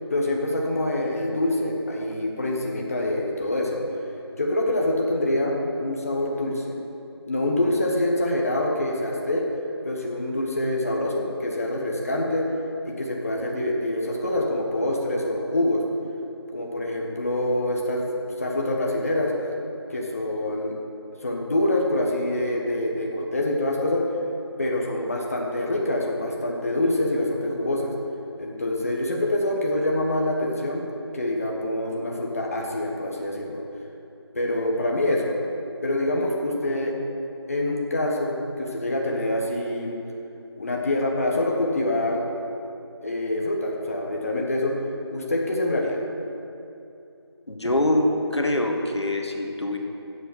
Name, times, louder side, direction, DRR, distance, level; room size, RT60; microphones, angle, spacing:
voice 1, 0.1-3.8 4.4-6.8 7.3-9.5 9.8-12.5 12.8-15.8 16.5-18.0 18.4-19.3 19.9-20.7 21.2-24.0 24.6-27.9 28.4-30.8 31.1-33.6 34.3-35.4 35.8-36.9 37.5-40.0 40.6-42.3 43.0-44.7 45.1-46.0, left 1 dB, 35° left, -1 dB, 1.2 m, -25 dB
voice 2, 47.5-49.8, left 1 dB, 80° left, 2 dB, 1.7 m, -24 dB
8.8 x 7.8 x 7.8 m, 2.8 s
figure-of-eight pair, 170°, 14 cm